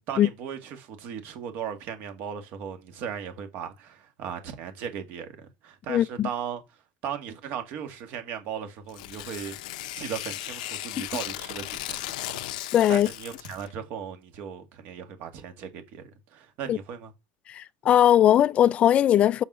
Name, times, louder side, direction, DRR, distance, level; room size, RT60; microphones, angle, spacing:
voice 1, 0.1-6.6 7.0-9.6 9.9-12.2 12.6-16.0 16.3-17.1, right 8 dB, 50° right, 2.1 m, -37 dB
voice 2, 5.9-6.3 12.7-13.1 16.7-16.8 17.5-19.4, left 11 dB, 30° left, 0.4 m, -19 dB
Tearing, 8.9-13.7, left 15 dB, 80° left, 0.7 m, -36 dB
6.5 x 5.2 x 5.6 m
supercardioid pair, 145°, 4 cm